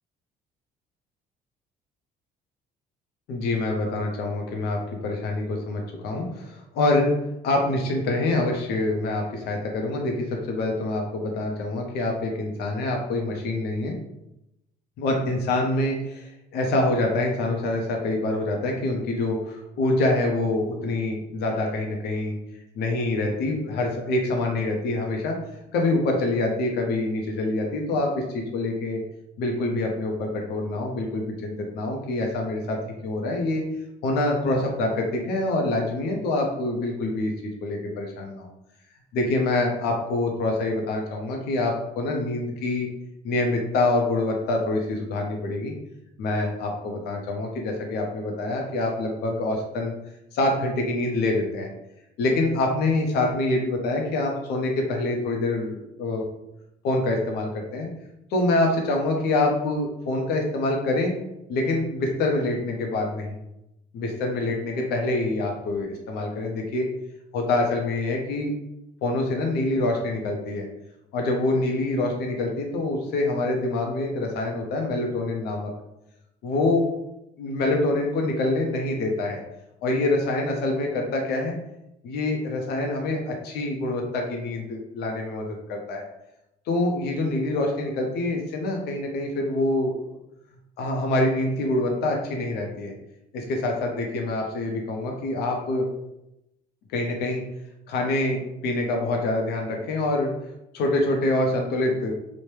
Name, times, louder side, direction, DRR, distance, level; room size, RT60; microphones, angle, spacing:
voice 1, 3.3-7.1 7.4-13.9 15.0-22.4 22.8-25.3 25.7-29.0 29.4-32.8 33.0-33.6 34.0-38.5 39.1-42.9 43.2-45.7 46.2-49.9 50.3-51.7 52.2-56.2 56.8-57.9 58.3-61.1 61.5-63.4 63.9-66.9 67.3-68.5 69.0-70.7 71.1-75.7 76.4-76.8 77.4-79.4 79.8-81.5 82.0-86.0 86.7-89.9 90.8-92.9 93.3-95.9 96.9-97.4 97.9-100.3 100.7-102.1, left 2 dB, 75° left, 1 dB, 0.5 m, -25 dB
3.0 x 2.1 x 3.2 m, 0.88 s
cardioid pair, 110°, 17 cm